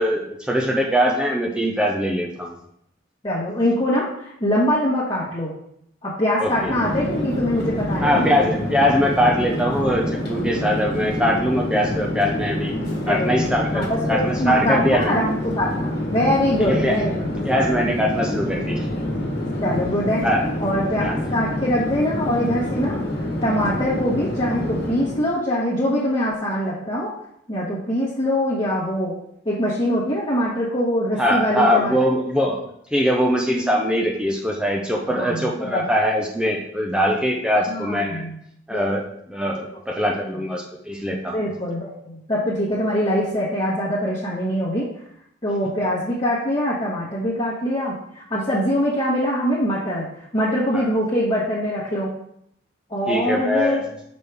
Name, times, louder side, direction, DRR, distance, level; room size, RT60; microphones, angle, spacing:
voice 1, 0.0-2.5 6.4-6.7 8.0-15.1 16.6-17.0 17.4-18.9 20.2-20.5 21.0-21.2 31.2-32.6 32.9-38.3 38.7-39.0 39.3-41.4 50.7-50.9 53.1-53.9, equal, 5° right, 0 dB, 0.6 m, -22 dB
voice 2, 3.2-5.5 6.0-8.3 13.1-13.5 13.7-17.3 19.6-20.2 20.6-23.0 23.4-27.1 27.5-29.1 29.4-31.9 35.1-35.8 37.7-38.4 38.7-38.9 41.3-44.9 45.4-50.1 50.3-52.1 52.9-53.8, equal, 25° left, -9 dB, 1.3 m, -23 dB
Chatter / Fixed-wing aircraft airplane, 6.4-25.3, left 1 dB, 60° left, 1.3 m, -27 dB
6.3 x 5.3 x 3.5 m, 0.72 s
head